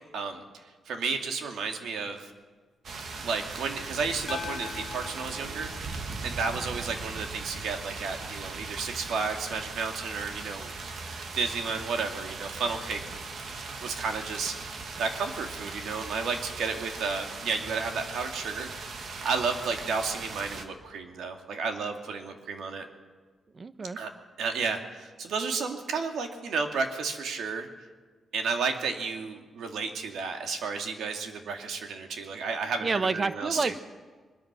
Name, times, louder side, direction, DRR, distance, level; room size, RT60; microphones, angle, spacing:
voice 1, 0.1-0.4 0.9-2.3 3.2-5.7 6.2-10.7 11.3-13.0 13.8-14.7 15.0-22.9 24.0-24.1 24.4-27.7 28.3-33.8, right 5 dB, 90° right, 4 dB, 2.4 m, -32 dB
sound 1, 2.8-20.6, right 4 dB, 60° right, 2.1 m, -39 dB
sound 2, 4.3-6.7, left 8 dB, 55° left, 0.8 m, -42 dB
voice 2, 23.5-24.0 32.8-33.8, right 4 dB, 35° right, 12 dB, 1.0 m, -28 dB
23.0 x 22.0 x 6.2 m, 1.4 s
cardioid pair, 125°, 0 cm